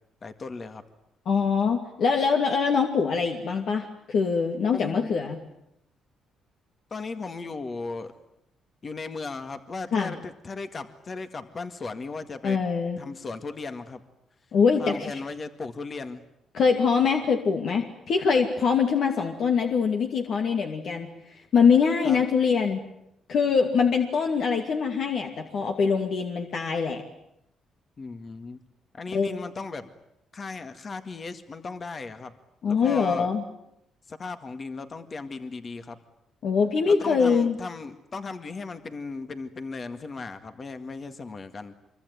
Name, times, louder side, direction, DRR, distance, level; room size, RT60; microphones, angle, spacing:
voice 1, 0.2-0.8 4.7-5.2 6.9-8.1 8.8-12.6 13.0-14.0 14.8-16.2 22.0-22.2 28.0-28.6 28.9-29.9 30.3-32.3 32.7-33.3 34.1-36.0 36.9-41.7, left 4 dB, 40° left, 9 dB, 2.0 m, -36 dB
voice 2, 1.3-5.4 9.9-10.1 12.4-13.0 14.5-15.2 16.5-21.1 21.5-22.9 23.3-27.0 29.1-29.3 32.6-33.4 36.4-37.6, left 5 dB, 65° left, 3 dB, 2.6 m, -23 dB
25.5 x 24.0 x 9.4 m, 0.80 s
cardioid pair, 90°, 0 cm